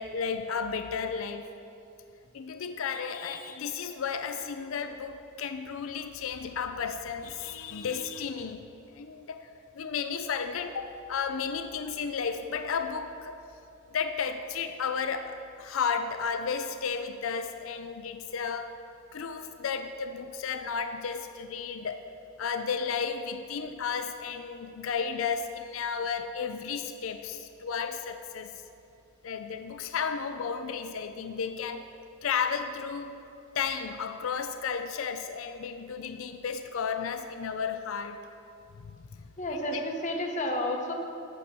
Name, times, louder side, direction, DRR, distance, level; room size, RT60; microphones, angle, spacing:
voice 1, 0.0-1.5 2.3-9.5 9.7-13.4 13.9-18.7 19.1-22.0 22.4-28.6 29.2-31.8 32.2-33.2 33.5-38.2 38.8-39.0 39.5-39.6, left 6 dB, 75° left, 8 dB, 0.5 m, -33 dB
voice 2, 39.4-40.9, left 1 dB, 35° left, 2 dB, 1.0 m, -31 dB
11.5 x 7.6 x 4.3 m, 2.6 s
head